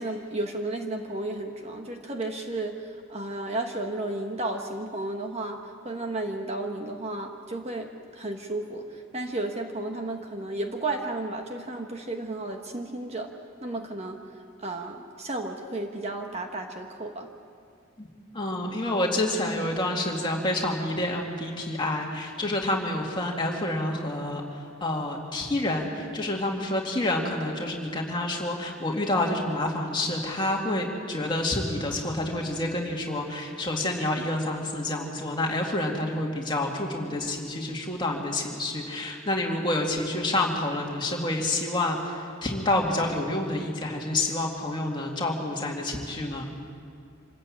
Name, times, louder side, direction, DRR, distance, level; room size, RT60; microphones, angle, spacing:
voice 1, 0.0-13.3 13.6-14.2 14.6-17.3, right 2 dB, 30° right, 3 dB, 1.2 m, -33 dB
voice 2, 18.3-24.4 24.8-46.5, left 1 dB, 20° left, 0 dB, 2.3 m, -28 dB
26.0 x 14.0 x 8.8 m, 2.3 s
head